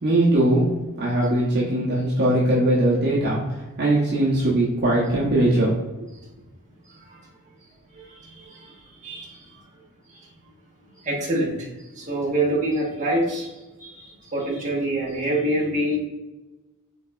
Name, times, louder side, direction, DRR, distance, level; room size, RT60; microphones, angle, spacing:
voice 1, 0.0-0.6 1.0-3.4 3.8-5.7, right 1 dB, 50° right, -6 dB, 0.9 m, -20 dB
voice 2, 7.9-8.7 9.0-9.4 11.0-11.5 12.0-13.5 13.8-16.0, right 1 dB, 35° right, -4 dB, 1.3 m, -25 dB
5.2 x 3.9 x 2.4 m, 1.1 s
head